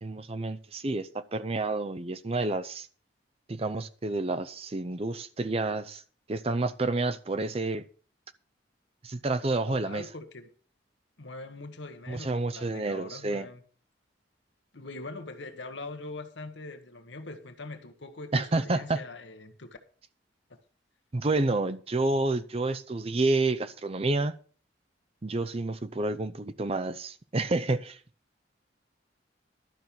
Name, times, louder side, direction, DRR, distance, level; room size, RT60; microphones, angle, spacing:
voice 1, 0.0-2.9 3.5-6.0 6.3-7.9 9.0-10.0 12.1-13.5 18.3-19.0 21.1-24.3 25.2-28.0, right 2 dB, 30° right, 0.5 m, -29 dB
voice 2, 9.7-10.4 11.2-13.6 14.7-19.7 20.5-20.6, left 2 dB, 75° left, 1.3 m, -42 dB
12.0 x 6.1 x 7.0 m
head